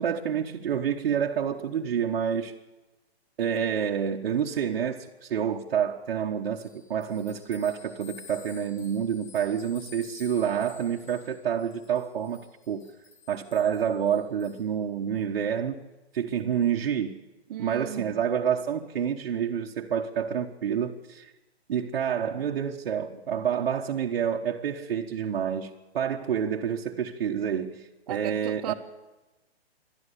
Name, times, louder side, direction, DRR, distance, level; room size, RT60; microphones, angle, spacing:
voice 1, 0.0-2.5 3.4-12.9 13.3-15.8 16.1-17.2 17.6-21.3 21.7-28.7, right 8 dB, 55° right, 1.4 m, -28 dB
sound 1, 6.5-14.6, left 7 dB, 45° left, 5.7 m, -51 dB
voice 2, 17.5-18.2 28.1-28.7, right 12 dB, 40° right, 1.5 m, -36 dB
28.5 x 12.5 x 8.4 m
hypercardioid pair, 145°, 32 cm